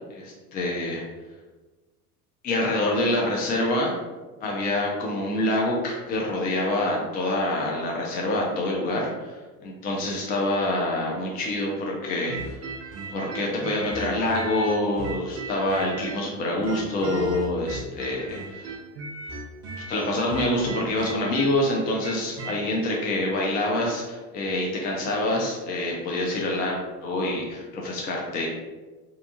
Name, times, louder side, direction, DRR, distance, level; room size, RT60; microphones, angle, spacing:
voice 1, 0.1-1.0 2.4-4.0 4.4-9.3 9.6-12.7 13.1-18.7 19.9-28.5, left 1 dB, 20° left, -2 dB, 0.3 m, -26 dB
sound 1, 12.3-16.3 16.6-22.6, right 2 dB, 35° right, 0.5 m, -36 dB
2.7 x 2.3 x 2.5 m, 1.2 s
hypercardioid pair, 75°, 46 cm